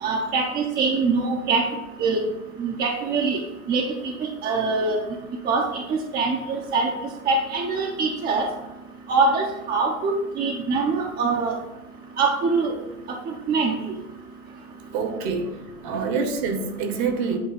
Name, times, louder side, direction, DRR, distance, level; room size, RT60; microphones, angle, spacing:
voice 1, 0.0-1.7 2.0-2.2 2.6-3.4 3.7-5.0 5.5-6.9 7.3-8.5 9.1-11.6 12.2-12.7 13.5-13.9, right 4 dB, 20° right, 1 dB, 0.8 m, -23 dB
voice 2, 14.9-17.4, right 5 dB, 40° right, 6 dB, 1.2 m, -26 dB
8.7 x 3.2 x 5.2 m, 0.99 s
hypercardioid pair, 105°, 44 cm